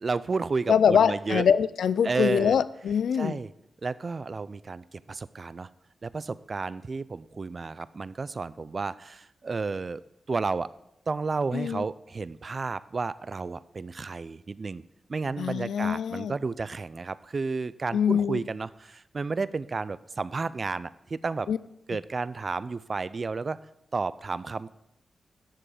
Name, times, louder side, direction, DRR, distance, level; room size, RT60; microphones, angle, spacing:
voice 1, 0.0-1.5 2.0-2.6 3.2-3.5 3.8-5.7 6.0-10.0 10.3-10.7 11.1-14.8 15.1-21.5 21.9-23.6 23.9-24.7, right 4 dB, 50° right, 17 dB, 0.4 m, -32 dB
voice 2, 0.7-3.4 11.5-11.8 15.4-16.3 17.9-18.4 21.5-21.6, left 7 dB, 80° left, 17 dB, 0.3 m, -24 dB
11.5 x 6.8 x 4.9 m, 0.84 s
supercardioid pair, 45°, 0 cm